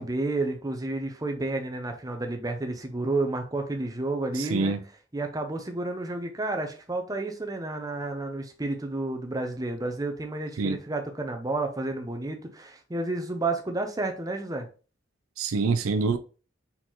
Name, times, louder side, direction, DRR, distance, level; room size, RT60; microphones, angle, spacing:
voice 1, 0.0-4.7 5.1-14.7, right 2 dB, 15° right, 0.6 m, -31 dB
voice 2, 4.3-4.8 10.6-10.8 15.4-16.2, right 4 dB, 85° right, 0.5 m, -26 dB
4.2 x 4.2 x 3.0 m
head